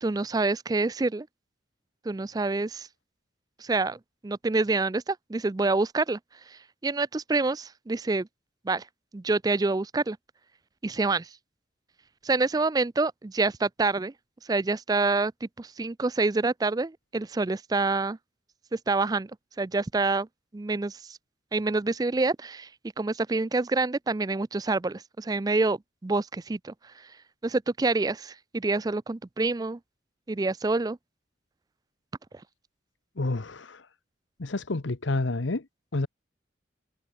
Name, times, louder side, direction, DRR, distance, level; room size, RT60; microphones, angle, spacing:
voice 1, 0.0-1.3 2.1-2.9 3.6-6.2 6.5-8.3 8.7-8.8 9.1-10.2 10.8-11.3 12.2-14.1 14.5-18.2 18.7-19.3 19.6-20.3 20.5-21.2 21.5-22.7 23.0-27.0 27.4-29.8 30.3-31.0, right 3 dB, 20° right, 0.4 m, -27 dB
voice 2, 33.2-33.9 34.4-35.7 35.9-36.1, left 2 dB, 90° left, 1.1 m, -29 dB
head